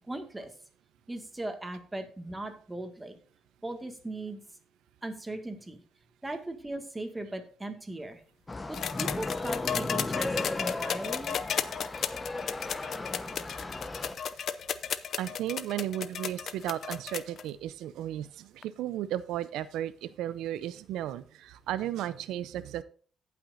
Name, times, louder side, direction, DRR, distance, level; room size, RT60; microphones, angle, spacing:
voice 1, 0.1-0.5 1.1-3.2 3.6-4.4 5.0-5.8 6.2-8.2 8.7-11.3, right 2 dB, 15° right, 6 dB, 1.8 m, -38 dB
sound 1, 8.5-14.2, left 2 dB, 20° left, 0.9 m, -36 dB
sound 2, 8.7-17.4 18.6-18.7, left 8 dB, 60° left, 0.6 m, -34 dB
voice 2, 15.2-22.8, right 12 dB, 90° right, 16 dB, 0.5 m, -34 dB
17.5 x 5.9 x 2.6 m, 0.42 s
cardioid pair, 90°, 0 cm